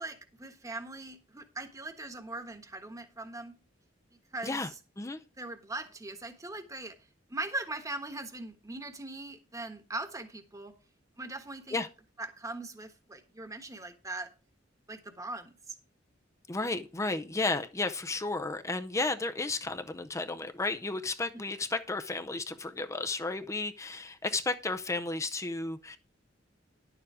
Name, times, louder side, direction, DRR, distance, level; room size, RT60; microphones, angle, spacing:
voice 1, 0.0-3.5 4.3-4.6 5.4-6.9 7.3-10.7 11.2-11.8 12.2-14.3 14.9-15.7 21.3-21.4, right 2 dB, 15° right, 7 dB, 1.3 m, -40 dB
voice 2, 16.5-26.0, left 3 dB, 15° left, 8 dB, 0.6 m, -33 dB
11.0 x 6.9 x 4.9 m, 0.32 s
head